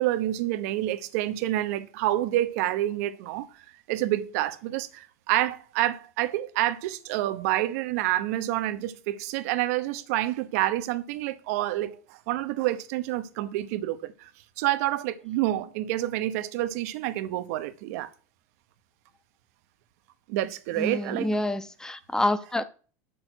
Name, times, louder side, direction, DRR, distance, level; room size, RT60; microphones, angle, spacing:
voice 1, 0.0-14.3 14.6-18.1 20.3-21.3, right 14 dB, 65° right, 0.8 m, -28 dB
voice 2, 20.8-22.6, left 1 dB, 5° left, 0.8 m, -27 dB
7.7 x 6.3 x 4.4 m
hypercardioid pair, 100°, 9 cm